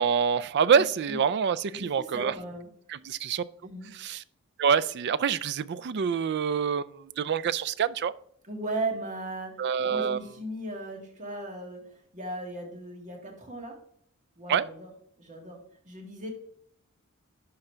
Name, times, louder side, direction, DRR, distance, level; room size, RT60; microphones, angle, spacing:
voice 1, 0.0-2.3 2.9-3.4 4.0-4.2 4.6-8.1 9.6-10.2 14.5-14.7, right 7 dB, 50° right, 18 dB, 0.4 m, -26 dB
voice 2, 1.7-2.7 3.6-3.9 8.4-9.6 9.8-13.8 14.4-14.9 15.2-16.3, right 2 dB, 35° right, 1 dB, 2.2 m, -37 dB
11.5 x 3.9 x 4.4 m, 0.66 s
head